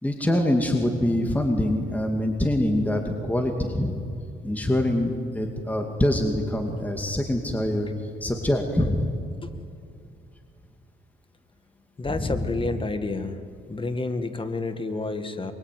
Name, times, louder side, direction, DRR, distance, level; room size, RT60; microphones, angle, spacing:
voice 1, 0.0-4.0 4.4-7.9 8.2-9.1 12.2-12.4, left 1 dB, 10° left, 3 dB, 2.5 m, -24 dB
voice 2, 12.0-13.4 13.7-15.5, left 3 dB, 25° left, 8 dB, 1.9 m, -30 dB
25.5 x 24.0 x 9.4 m, 2.4 s
cardioid pair, 90°, 20 cm